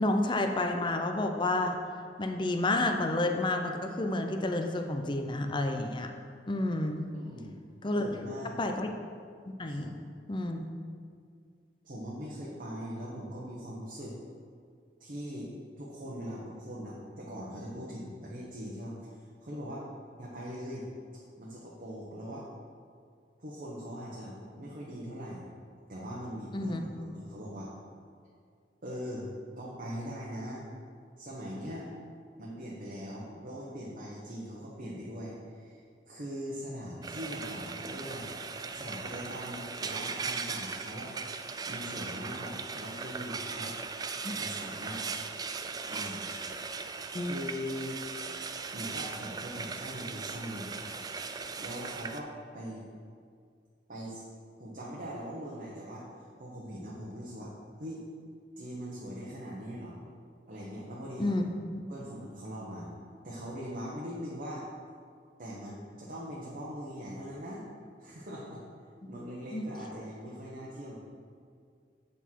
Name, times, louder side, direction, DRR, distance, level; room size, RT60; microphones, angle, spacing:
voice 1, 0.0-1.8 2.2-6.1 6.5-7.0 7.8-8.0 8.6-8.9 9.5-9.9 10.3-10.6 26.5-26.8 44.2-44.3 47.1-47.4 61.2-61.4 61.7-61.8 69.5-69.6, left 2 dB, 25° left, 5 dB, 0.6 m, -30 dB
voice 2, 7.1-7.6 7.9-8.6 9.7-9.9 11.8-14.2 15.0-15.5 15.8-18.9 19.4-19.8 20.2-20.9 21.4-22.5 23.4-25.4 25.9-27.7 28.8-29.3 29.6-30.6 31.2-31.9 32.4-35.8 36.1-38.3 38.7-41.1 41.6-43.7 44.3-45.0 45.9-46.2 47.2-48.0 48.7-50.7 51.6-52.3 52.5-52.8 53.9-54.2 54.6-56.1 56.4-57.5 57.8-58.0 58.6-60.0 60.5-61.3 61.9-62.9 63.2-64.6 65.4-67.7 68.0-68.6 69.1-71.0, equal, 50° right, -5 dB, 1.2 m, -41 dB
Frying (food), 37.0-52.2, right 4 dB, 20° right, 0.3 m, -38 dB
8.1 x 6.1 x 4.6 m, 2.2 s
head